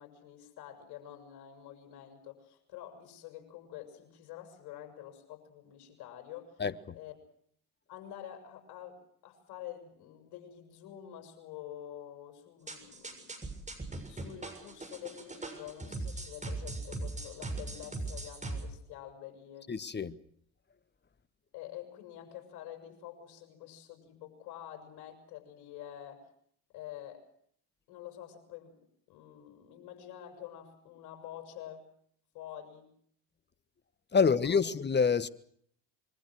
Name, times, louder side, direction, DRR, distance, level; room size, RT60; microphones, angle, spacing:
voice 1, 0.0-6.6 6.9-7.1 7.9-13.4 14.0-19.7 21.5-26.2 26.7-27.2 27.9-28.8 29.1-31.9 32.3-32.9 34.1-34.2 34.5-34.6, left 11 dB, 65° left, 6.9 m, -47 dB
voice 2, 6.6-7.0 19.7-20.2 34.1-35.3, left 5 dB, 25° left, 1.3 m, -27 dB
sound 1, 12.7-18.6, right 2 dB, 15° right, 6.8 m, -39 dB
25.5 x 23.5 x 6.4 m
hypercardioid pair, 65°, 43 cm